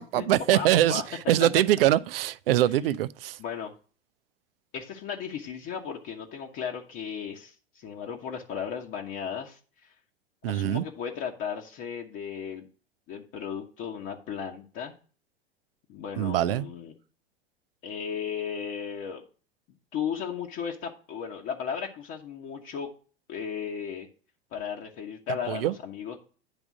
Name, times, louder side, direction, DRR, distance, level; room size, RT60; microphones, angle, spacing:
voice 1, 0.0-1.0 1.3-3.4 10.4-10.8 16.2-16.6 25.5-25.7, right 13 dB, 65° right, 0.5 m, -23 dB
voice 2, 0.5-1.2 3.4-3.7 4.7-9.9 10.5-12.7 13.1-14.9 15.9-16.9 17.8-19.2 19.9-22.9 23.3-24.1 24.5-26.2, left 7 dB, 40° left, 1.2 m, -35 dB
10.0 x 3.6 x 6.0 m
figure-of-eight pair, 85°, 32 cm